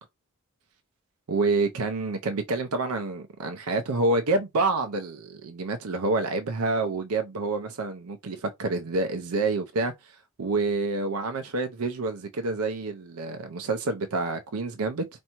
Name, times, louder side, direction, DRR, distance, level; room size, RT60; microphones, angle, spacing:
voice 1, 1.3-15.0, right 3 dB, 85° right, 0.6 m, -28 dB
4.4 x 2.6 x 2.9 m
head